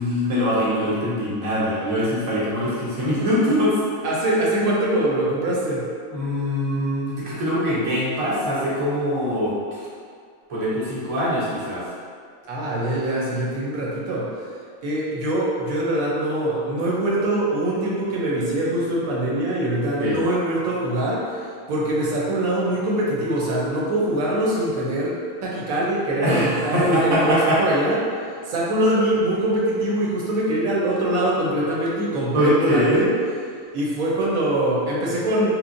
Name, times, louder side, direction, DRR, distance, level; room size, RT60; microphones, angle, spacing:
voice 1, 0.0-3.8 6.1-9.9 10.5-11.9 20.0-20.2 26.2-27.6 32.3-33.1, equal, 40° right, -8 dB, 0.5 m, -23 dB
voice 2, 4.0-5.9 12.5-14.3 14.8-28.0 28.5-33.1 33.7-35.5, right 1 dB, 75° right, -5 dB, 1.0 m, -23 dB
3.0 x 2.2 x 2.5 m, 2.1 s
omnidirectional pair, 1.5 m